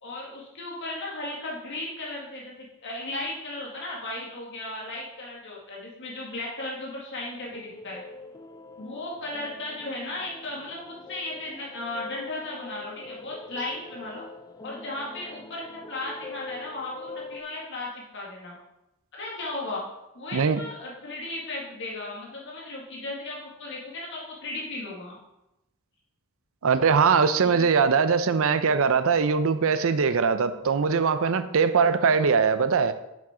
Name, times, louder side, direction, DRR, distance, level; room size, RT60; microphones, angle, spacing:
voice 1, 0.0-8.0 8.8-14.2 14.6-18.6 19.1-19.8 20.1-25.2 27.4-27.7, left 2 dB, 55° left, 1.8 m, -36 dB
sound 1, 7.3-17.4, left 3 dB, 15° left, 0.5 m, -43 dB
voice 2, 20.3-20.6 26.6-32.9, right 5 dB, 65° right, 0.6 m, -21 dB
7.4 x 6.1 x 4.3 m
head